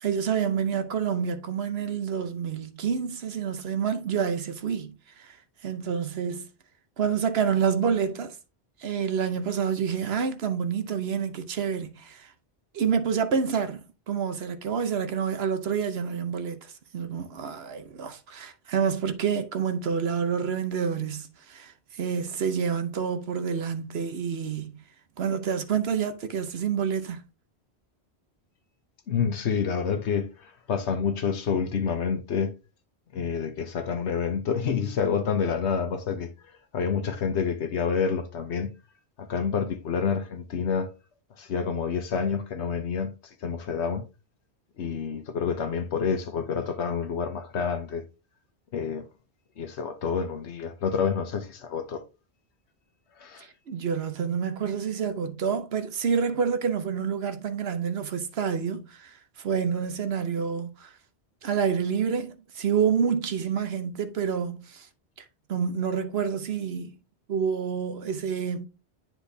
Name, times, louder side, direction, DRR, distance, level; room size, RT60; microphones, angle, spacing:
voice 1, 0.0-5.4 5.6-6.4 7.0-8.4 8.8-12.3 12.7-24.7 25.2-27.2 53.4-60.9 61.4-64.9 65.5-67.0 67.3-68.7, right 7 dB, 70° right, 1.1 m, -28 dB
voice 2, 29.1-32.5 33.1-36.3 36.7-38.7 39.2-40.9 41.4-43.1 43.4-44.0 44.8-48.1 48.7-49.0 49.6-52.0 53.2-53.5, left 6 dB, 85° left, 1.2 m, -28 dB
10.0 x 4.4 x 2.7 m
omnidirectional pair, 1.1 m